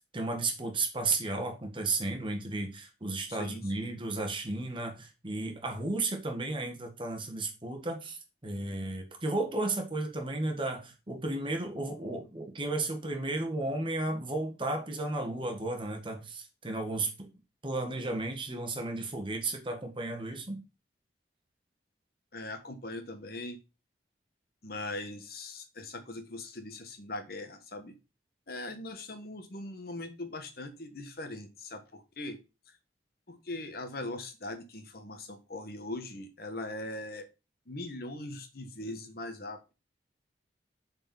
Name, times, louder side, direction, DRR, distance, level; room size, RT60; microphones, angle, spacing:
voice 1, 0.0-17.3 17.6-20.6, right 2 dB, 30° right, 1.6 m, -34 dB
voice 2, 3.3-3.9 22.3-23.6 24.6-27.9 28.5-32.4 33.3-37.3 37.7-39.7, left 2 dB, 55° left, 1.3 m, -40 dB
7.0 x 4.5 x 5.6 m
head